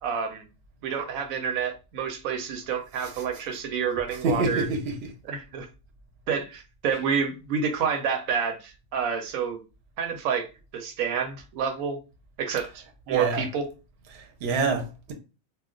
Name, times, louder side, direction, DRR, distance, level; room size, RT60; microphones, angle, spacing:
voice 1, 0.0-0.4 0.8-4.6 5.2-5.7 6.3-9.6 10.0-10.5 10.7-12.0 12.4-13.7, right 7 dB, 80° right, 1.0 m, -28 dB
voice 2, 4.2-5.1 13.1-13.4 14.1-15.1, right 3 dB, 60° right, 0.8 m, -27 dB
2.3 x 2.2 x 3.6 m
omnidirectional pair, 1.4 m